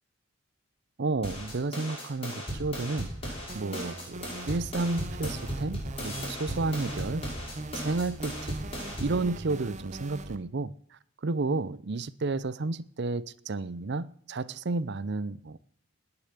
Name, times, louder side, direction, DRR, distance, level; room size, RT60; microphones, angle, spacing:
voice 1, 1.0-7.2 7.7-8.6 9.0-15.6, right 3 dB, 50° right, 0.6 m, -32 dB
sound 1, 1.2-9.2, equal, 25° left, 6.8 m, -37 dB
sound 2, 3.5-10.4, right 2 dB, 35° right, 1.0 m, -41 dB
19.0 x 7.0 x 8.2 m
head